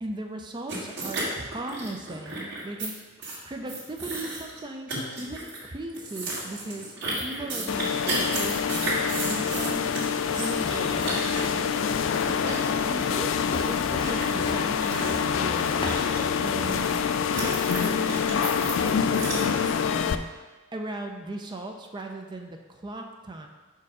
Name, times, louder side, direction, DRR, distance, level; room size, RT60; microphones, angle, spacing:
voice 1, 0.0-10.0 10.3-11.9 12.4-16.1 16.4-17.0 17.4-18.5 18.8-20.3 20.7-23.5, right 1 dB, 20° right, 3 dB, 0.5 m, -38 dB
sound 1, 0.7-2.9 3.2-3.4 3.7-4.6 4.9-5.6 5.9-17.0 17.3-19.7, right 2 dB, 60° right, 1.7 m, -34 dB
sound 2, 7.7-20.2, left 7 dB, 65° left, 0.3 m, -26 dB
Walk footsteps, 8.9-16.7, left 2 dB, 25° left, 0.7 m, -38 dB
5.3 x 4.6 x 4.8 m, 1.3 s
head